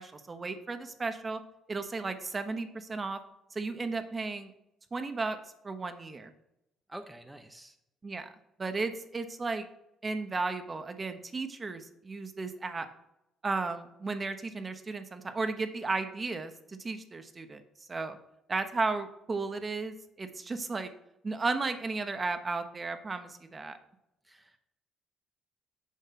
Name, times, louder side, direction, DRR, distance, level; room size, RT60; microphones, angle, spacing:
voice 1, 0.0-1.4 1.7-3.2 3.5-4.5 4.9-5.4 5.6-6.3 8.0-8.3 8.6-9.6 10.0-12.9 13.4-17.6 17.9-18.2 18.5-20.9 21.2-23.8, right 3 dB, 30° right, 8 dB, 1.0 m, -34 dB
voice 2, 6.9-7.8 24.2-24.6, right 1 dB, 10° right, 5 dB, 0.8 m, -47 dB
7.4 x 5.4 x 5.8 m, 0.85 s
supercardioid pair, 70°, 0 cm